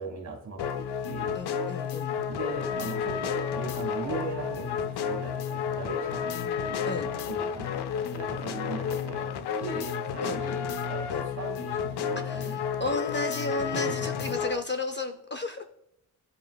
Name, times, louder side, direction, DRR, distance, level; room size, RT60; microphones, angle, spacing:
voice 1, 0.0-1.4 2.3-6.6 7.3-7.8 8.1-9.3 9.6-12.6 13.7-14.3, right 4 dB, 45° right, 1.6 m, -39 dB
sound 1, 0.6-14.6, left 7 dB, 85° left, 0.6 m, -31 dB
voice 2, 1.3-2.2 6.9-7.1 10.2-10.4 11.1-11.2 12.2-15.6, left 2 dB, 30° left, 0.4 m, -33 dB
sound 2, 2.5-4.9 5.7-9.2, left 1 dB, 10° left, 0.8 m, -46 dB
16.0 x 5.3 x 2.3 m
wide cardioid pair, 180°, 38 cm